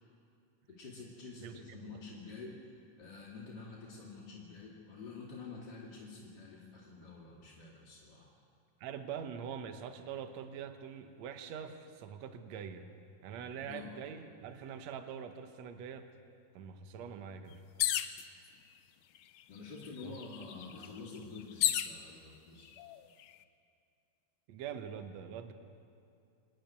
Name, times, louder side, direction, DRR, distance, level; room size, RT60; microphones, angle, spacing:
voice 1, 0.7-2.6 3.0-8.3 13.5-13.9 19.5-22.7, left 4 dB, 35° left, -5 dB, 2.7 m, -48 dB
voice 2, 1.4-2.0 8.8-12.9 13.2-16.1 16.5-17.6 20.0-20.2 24.5-25.5, right 7 dB, 65° right, 8 dB, 2.0 m, -44 dB
Northern Flicker with morning Dove and other birds, 17.8-18.2 19.2-19.3 19.6-22.0 22.7-23.2, left 13 dB, 80° left, 2.0 m, -33 dB
26.0 x 10.5 x 9.4 m, 2.6 s
omnidirectional pair, 3.9 m